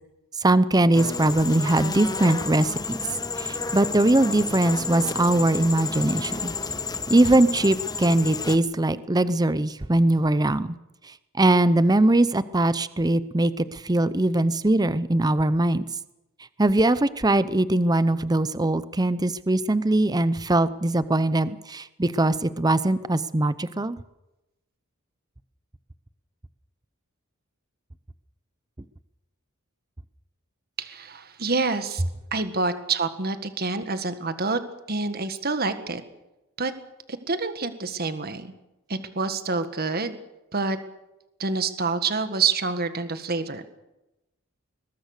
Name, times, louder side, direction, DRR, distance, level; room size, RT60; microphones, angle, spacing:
voice 1, 0.4-3.0 3.4-6.5 7.1-10.8 11.4-15.9 16.6-24.0, right 1 dB, 20° right, 15 dB, 0.7 m, -21 dB
sound 1, 0.9-8.6, left 4 dB, 20° left, 1.0 m, -31 dB
voice 2, 30.8-32.0 32.3-34.6 34.9-36.0 36.6-36.7 37.1-38.5 38.9-40.2 40.5-40.8 41.4-43.7, right 4 dB, 45° right, 10 dB, 1.7 m, -27 dB
21.5 x 21.5 x 6.6 m, 0.95 s
head